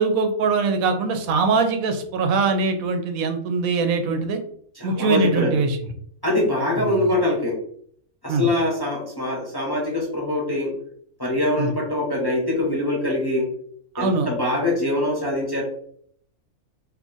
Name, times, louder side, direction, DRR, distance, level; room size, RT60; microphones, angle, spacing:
voice 1, 0.0-4.4 4.8-5.8 6.8-7.1 8.3-8.5 11.6-11.7 13.9-14.3, right 4 dB, 90° right, 6 dB, 1.0 m, -22 dB
voice 2, 4.8-5.6 6.2-7.6 8.2-10.8 11.2-13.5 14.0-15.6, left 1 dB, 25° left, -3 dB, 0.6 m, -23 dB
2.7 x 2.5 x 3.8 m, 0.63 s
omnidirectional pair, 1.4 m